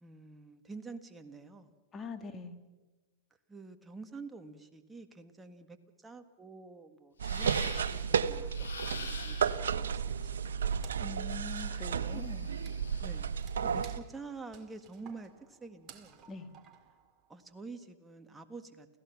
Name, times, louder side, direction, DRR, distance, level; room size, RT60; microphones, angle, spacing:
voice 1, 0.0-1.7 3.5-10.9 11.7-12.2 13.0-13.3 13.6-16.3 17.3-18.9, right 4 dB, 10° right, 7 dB, 1.7 m, -48 dB
voice 2, 1.9-2.6 11.0-12.5 16.3-16.5, left 3 dB, 20° left, 7 dB, 2.1 m, -43 dB
sound 1, 7.2-8.1 8.5-9.7 11.4-13.3, left 6 dB, 90° left, 4.1 m, -46 dB
sound 2, 7.2-14.0, right 7 dB, 85° right, 0.9 m, -33 dB
Wood, 10.8-17.5, right 8 dB, 30° right, 2.2 m, -58 dB
29.0 x 16.0 x 6.0 m, 1.2 s
hypercardioid pair, 120°, 0 cm